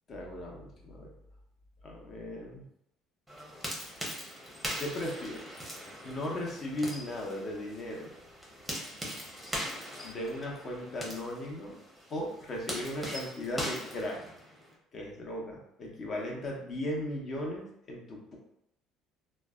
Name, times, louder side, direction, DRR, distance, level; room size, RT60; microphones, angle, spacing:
voice 1, 0.1-1.1 1.8-2.6 4.8-5.6 6.0-8.1 10.0-11.8 12.1-14.2 14.9-18.4, left 1 dB, 40° left, -1 dB, 0.8 m, -37 dB
sound 1, 3.3-14.7, equal, ahead, 0.8 m, -41 dB
3.1 x 2.1 x 2.3 m, 0.75 s
cardioid pair, 105°, 0 cm